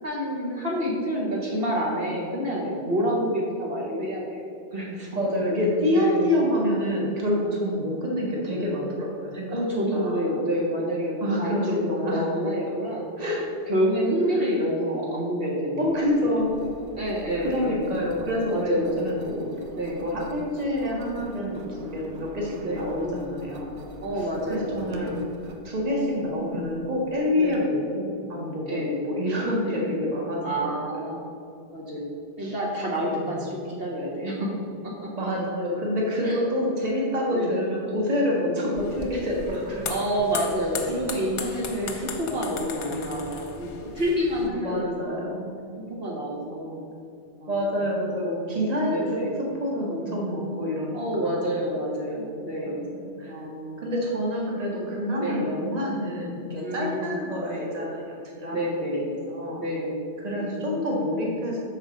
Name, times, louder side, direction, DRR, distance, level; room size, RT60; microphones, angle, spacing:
voice 1, 0.0-4.4 4.7-5.1 5.9-6.3 9.5-13.1 13.7-16.3 16.9-17.9 18.5-19.0 19.7-20.1 22.6-22.9 24.0-25.2 27.4-27.7 28.7-29.0 29.7-29.9 30.4-31.2 31.7-32.1 32.4-35.1 36.2-36.4 37.3-37.6 39.9-45.2 45.7-46.8 47.4-47.7 48.8-49.3 50.9-52.9 53.3-53.8 55.2-55.5 56.6-57.7 58.5-59.1 59.6-60.0 60.3-60.6, equal, 55° right, -5 dB, 1.4 m, -28 dB
voice 2, 5.1-9.6 9.9-10.2 11.2-12.3 13.2-13.4 14.3-14.5 15.8-16.5 17.4-19.5 20.0-23.8 24.1-25.2 25.6-31.0 32.4-32.6 33.1-33.3 35.2-39.9 44.4-45.7 47.5-49.2 49.6-51.5 52.7-53.4 53.8-58.6 59.0-59.6 60.2-61.6, left 1 dB, 35° right, -3 dB, 1.4 m, -27 dB
Engine, 15.9-27.6, right 2 dB, 80° right, 1.0 m, -44 dB
sound 1, 38.8-44.5, left 5 dB, 75° left, 1.0 m, -37 dB
6.5 x 4.8 x 5.0 m, 2.5 s
omnidirectional pair, 1.2 m